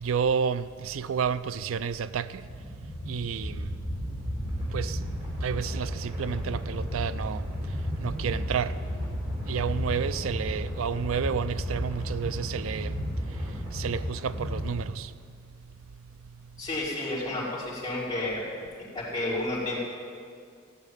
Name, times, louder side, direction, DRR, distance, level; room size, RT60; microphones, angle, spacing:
voice 1, 0.0-2.5 3.1-3.7 4.7-5.0 5.4-7.4 8.0-8.8 9.4-13.0 13.3-13.4 13.7-15.1, right 6 dB, 80° right, 0.4 m, -30 dB
sound 1, 2.4-14.7, equal, 30° right, 4.3 m, -33 dB
voice 2, 16.6-18.4 18.9-19.7, left 2 dB, 20° left, 5.2 m, -31 dB
16.0 x 8.2 x 9.3 m
head